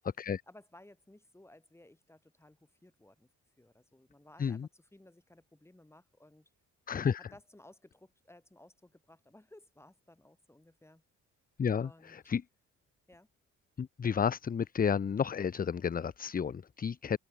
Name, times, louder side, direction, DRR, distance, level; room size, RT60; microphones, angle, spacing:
voice 1, 0.5-3.3 3.6-6.5 7.3-11.0 11.8-12.2 13.1-13.3, left 1 dB, 10° left, 5.4 m, -58 dB
voice 2, 6.9-7.3 11.6-12.4 13.8-17.2, left 7 dB, 30° left, 0.7 m, -32 dB
open air
cardioid pair, 90°, 30 cm